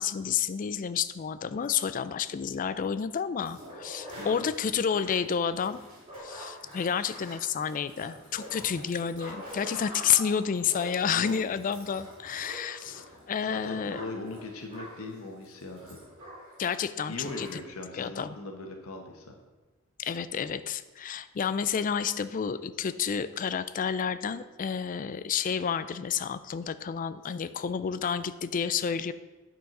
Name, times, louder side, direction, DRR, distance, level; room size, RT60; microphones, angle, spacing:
voice 1, 0.0-5.8 6.2-14.0 16.6-17.6 18.0-18.3 20.0-29.1, left 7 dB, 40° left, 13 dB, 0.4 m, -30 dB
sound 1, 3.4-16.6 16.9-17.0 17.2-17.5, equal, 25° right, 3.0 m, -45 dB
voice 2, 4.2-4.5 11.0-11.6 12.8-13.1 13.4-16.0 17.1-19.4, left 2 dB, 85° left, 3 dB, 1.1 m, -40 dB
9.1 x 4.6 x 5.4 m, 1.2 s
head